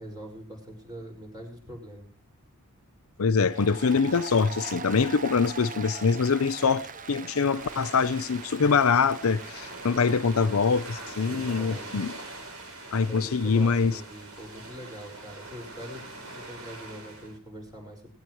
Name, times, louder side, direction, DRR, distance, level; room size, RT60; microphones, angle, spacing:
voice 1, 0.0-2.1 11.3-11.8 13.0-18.2, equal, 20° right, 5.4 m, -43 dB
voice 2, 3.2-12.1 12.9-14.0, left 5 dB, 75° left, 0.6 m, -24 dB
Applause, 3.4-12.1, right 5 dB, 40° right, 0.8 m, -42 dB
sound 1, 7.4-17.4, right 2 dB, 80° right, 3.5 m, -43 dB
18.0 x 17.5 x 3.1 m
head